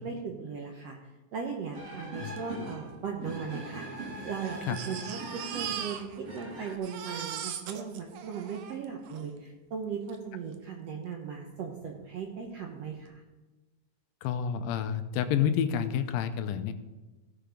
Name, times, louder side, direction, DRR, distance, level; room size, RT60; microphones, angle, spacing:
voice 1, 0.0-1.0 1.3-3.9 4.2-13.2, right 6 dB, 75° right, 1 dB, 1.5 m, -38 dB
sound 1, 1.7-6.8, right 1 dB, 35° right, 1.2 m, -42 dB
Crying sobbing, 2.4-2.5 2.7-2.8 3.5-6.4 6.7-9.3 10.1-10.2 10.5-10.6, right 9 dB, 90° right, 2.6 m, -40 dB
voice 2, 14.2-16.7, left 8 dB, 90° left, 8 dB, 2.4 m, -29 dB
17.0 x 5.8 x 5.1 m, 1.2 s
omnidirectional pair, 4.1 m